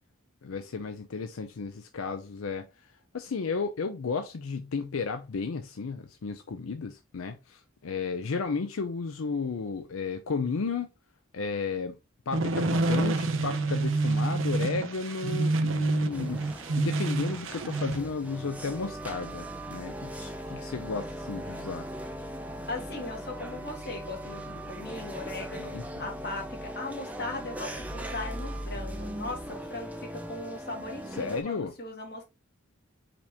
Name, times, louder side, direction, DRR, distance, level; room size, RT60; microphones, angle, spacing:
voice 1, 0.4-2.7 3.1-10.9 11.3-12.0 12.3-16.4 16.7-21.9 25.7-25.8 31.1-31.7, left 4 dB, 90° left, 0.5 m, -33 dB
sound 1, 12.3-18.0, right 2 dB, 75° right, 0.6 m, -28 dB
sound 2, 16.1-31.4, equal, 5° right, 0.5 m, -39 dB
voice 2, 22.7-25.7 26.0-32.2, left 2 dB, 50° left, 1.7 m, -38 dB
5.1 x 2.9 x 3.3 m
head